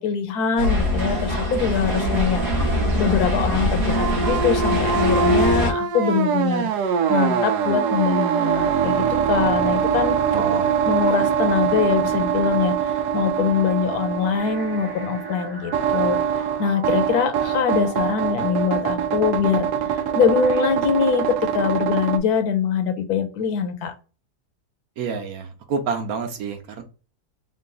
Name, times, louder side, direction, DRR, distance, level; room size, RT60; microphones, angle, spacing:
voice 1, 0.0-2.4 3.0-6.7 7.1-10.2 10.9-16.2 16.6-23.9, left 7 dB, 75° left, 8 dB, 1.2 m, -23 dB
sound 1, 0.6-5.7, equal, 50° right, 1.1 m, -23 dB
sound 2, 3.9-22.2, right 7 dB, 85° right, 1.2 m, -23 dB
voice 2, 10.3-10.7 11.0-11.2 25.0-26.8, right 5 dB, 70° right, 6 dB, 1.2 m, -28 dB
sound 3, 14.4-20.7, right 1 dB, 20° right, 0.8 m, -40 dB
3.8 x 2.2 x 3.8 m, 0.34 s
omnidirectional pair, 1.7 m